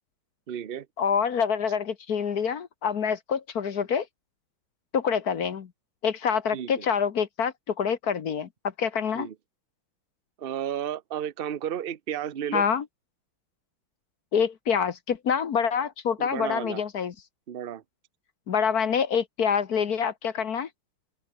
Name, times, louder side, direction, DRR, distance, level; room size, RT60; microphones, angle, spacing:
voice 1, 0.5-0.9 6.5-6.9 9.1-9.3 10.4-12.6 16.2-16.8 17.5-17.8, right 10 dB, 55° right, 0.6 m, -33 dB
voice 2, 1.0-4.1 4.9-5.7 6.0-8.5 8.8-9.3 12.5-12.8 14.3-17.1 18.5-20.7, left 7 dB, 50° left, 1.5 m, -26 dB
open air
omnidirectional pair, 2.3 m